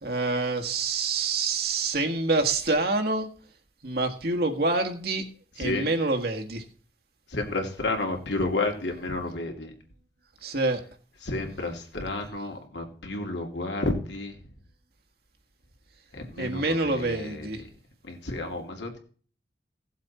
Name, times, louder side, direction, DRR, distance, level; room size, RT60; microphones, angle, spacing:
voice 1, 0.0-3.3 3.8-5.2 5.6-6.6 10.4-10.8 16.4-17.6, right 3 dB, 60° right, 3 dB, 1.5 m, -26 dB
voice 2, 7.3-9.7 11.2-14.3 16.1-17.5 18.1-19.0, left 2 dB, 75° left, 2 dB, 2.6 m, -31 dB
16.5 x 7.5 x 4.2 m, 0.42 s
head